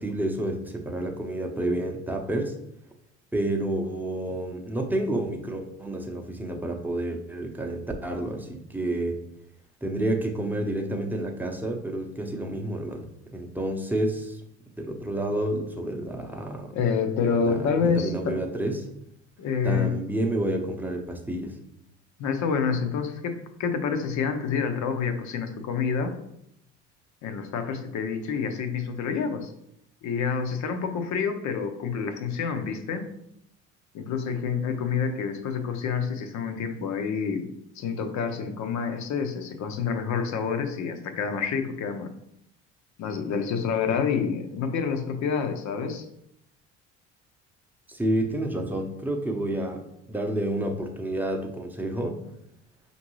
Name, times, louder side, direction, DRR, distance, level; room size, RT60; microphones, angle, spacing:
voice 1, 0.0-2.5 3.3-9.2 9.8-13.1 13.3-14.4 14.8-16.7 17.2-18.9 19.6-21.6 47.9-52.2, right 1 dB, 5° right, 2 dB, 0.8 m, -29 dB
voice 2, 16.7-18.4 19.4-19.9 22.2-26.1 27.2-29.5 30.0-33.1 33.9-37.4 37.8-42.1 43.0-46.0, left 6 dB, 55° left, 7 dB, 0.8 m, -28 dB
5.1 x 2.6 x 3.1 m, 0.77 s
hypercardioid pair, 65°, 35 cm